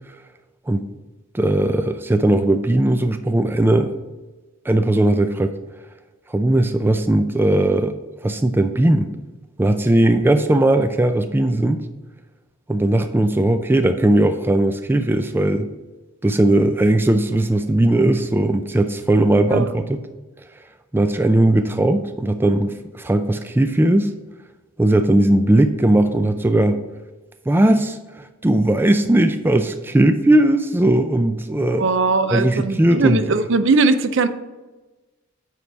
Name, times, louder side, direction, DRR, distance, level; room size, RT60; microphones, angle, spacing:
voice 1, 1.3-3.9 4.7-5.6 6.3-7.9 8.2-9.1 9.6-11.8 12.7-15.7 16.2-20.0 20.9-24.1 24.8-26.8 27.5-31.8 32.3-33.2, right 1 dB, 10° right, 9 dB, 0.3 m, -18 dB
voice 2, 31.8-34.3, right 3 dB, 65° right, 11 dB, 0.5 m, -19 dB
9.2 x 3.4 x 5.9 m, 1.2 s
head